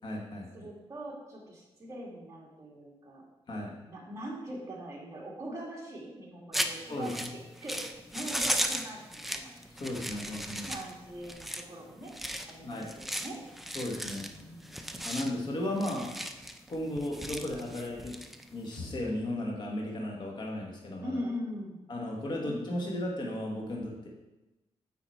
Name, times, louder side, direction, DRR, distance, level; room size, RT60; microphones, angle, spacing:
voice 1, 0.0-0.5 3.5-3.7 6.9-7.1 9.7-10.7 12.6-12.9 13.7-14.3 15.0-16.1 16.7-18.2 18.5-21.2 21.9-24.1, left 1 dB, 45° left, -1 dB, 1.4 m, -35 dB
voice 2, 0.5-3.2 3.8-9.8 10.2-10.4 10.7-12.1 12.5-13.4 14.2-15.2 21.0-21.8 22.4-23.1, equal, 30° right, -3 dB, 2.0 m, -42 dB
sound 1, 6.5-18.9, equal, ahead, 0.4 m, -37 dB
8.5 x 4.0 x 4.5 m, 1.0 s
wide cardioid pair, 130°, 10 cm